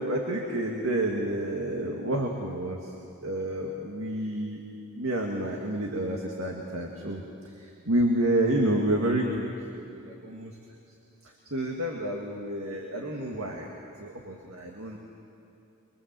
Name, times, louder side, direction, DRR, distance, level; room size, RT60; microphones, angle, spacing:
voice 1, 0.0-2.9 3.2-4.6 5.0-7.2 7.6-10.5 11.5-13.7 14.0-15.0, right 1 dB, 70° right, 0 dB, 2.1 m, -29 dB
24.0 x 23.0 x 7.7 m, 2.7 s
head